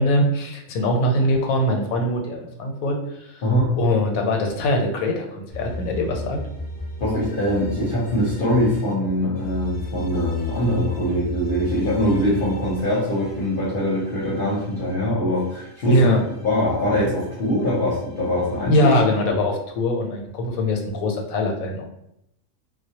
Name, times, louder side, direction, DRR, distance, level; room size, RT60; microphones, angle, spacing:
voice 1, 0.0-3.4 3.8-6.4 15.9-16.2 18.7-21.8, left 1 dB, 90° left, 2 dB, 1.0 m, -22 dB
voice 2, 3.4-3.7 7.0-16.1 16.4-18.9 19.3-19.4, equal, 55° left, -7 dB, 0.7 m, -22 dB
sound 1, 5.5-8.9 9.4-14.9 15.4-19.2, left 1 dB, 10° left, 0.5 m, -37 dB
2.2 x 2.0 x 2.7 m, 0.77 s
omnidirectional pair, 1.4 m